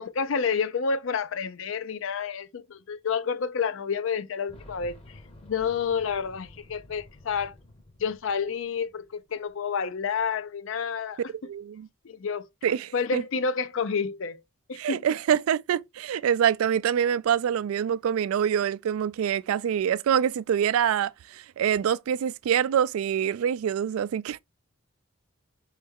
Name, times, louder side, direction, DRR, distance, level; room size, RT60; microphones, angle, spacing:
voice 1, 0.0-7.5 8.0-11.2 12.0-12.5 12.9-14.4 14.7-15.0, left 6 dB, 65° left, 0.4 m, -29 dB
Boom, 4.5-9.2 9.5-9.6 10.7-10.8, left 1 dB, 30° left, 0.8 m, -50 dB
voice 2, 11.4-11.9 12.6-13.2 14.8-24.4, right 9 dB, 80° right, 0.3 m, -25 dB
4.3 x 3.3 x 3.4 m
head